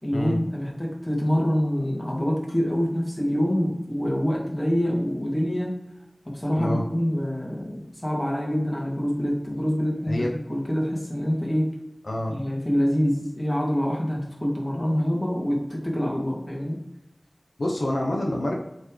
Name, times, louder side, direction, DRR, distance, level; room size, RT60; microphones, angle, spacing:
voice 1, 0.0-5.7 6.3-10.1 10.5-11.7 12.3-16.8, equal, 20° left, -3 dB, 2.4 m, -25 dB
voice 2, 12.0-12.4 17.6-18.6, left 1 dB, 75° left, -1 dB, 0.9 m, -27 dB
7.5 x 4.5 x 3.3 m, 0.93 s
wide cardioid pair, 45°, 0 cm